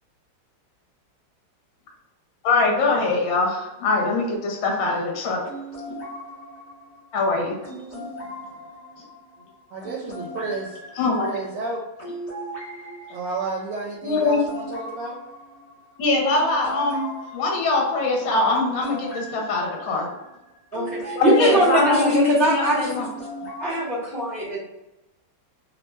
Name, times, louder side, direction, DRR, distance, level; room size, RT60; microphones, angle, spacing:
voice 1, 2.4-5.4 5.9-6.0 7.1-8.1 11.0-11.3 14.0-14.4 16.0-17.1 17.3-20.1 21.1-23.1, left 3 dB, 70° left, 0 dB, 1.4 m, -23 dB
sound 1, 5.4-21.8 22.9-23.6, right 1 dB, 85° left, 0.3 m, -39 dB
voice 2, 9.7-10.8 11.2-11.8 13.1-15.1, right 3 dB, 80° right, -3 dB, 1.4 m, -31 dB
voice 3, 20.7-22.9 23.6-24.6, right 1 dB, 40° right, -11 dB, 0.8 m, -21 dB
3.4 x 2.1 x 3.1 m, 0.96 s
omnidirectional pair, 2.3 m